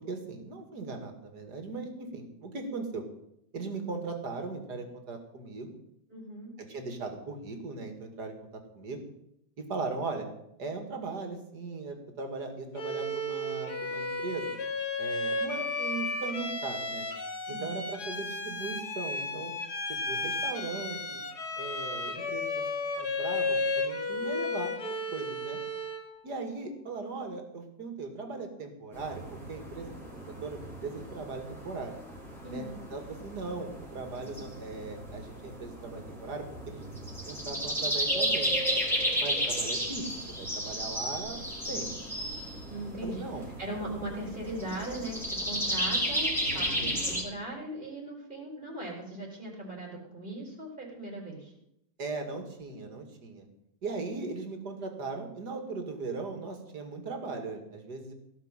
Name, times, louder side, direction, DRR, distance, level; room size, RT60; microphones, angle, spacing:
voice 1, 0.1-3.0 3.5-5.8 6.6-9.0 9.6-10.3 10.6-14.6 15.0-17.1 17.5-19.5 19.9-21.2 21.6-22.6 23.0-25.6 26.2-29.9 30.4-31.9 32.5-36.8 37.2-38.5 39.2-41.4 41.7-41.9 43.0-43.4 46.5-46.9 52.0-53.5 53.8-58.1, right 3 dB, 85° right, 5 dB, 2.9 m, -38 dB
voice 2, 6.1-6.5 17.5-17.8 32.4-32.8 42.7-51.5, right 1 dB, 30° right, -2 dB, 4.3 m, -39 dB
Bowed string instrument, 12.7-26.1, left 2 dB, 75° left, 2.9 m, -33 dB
sound 1, 28.9-47.2, equal, ahead, 4.0 m, -33 dB
16.5 x 6.8 x 9.0 m, 0.80 s
omnidirectional pair, 1.7 m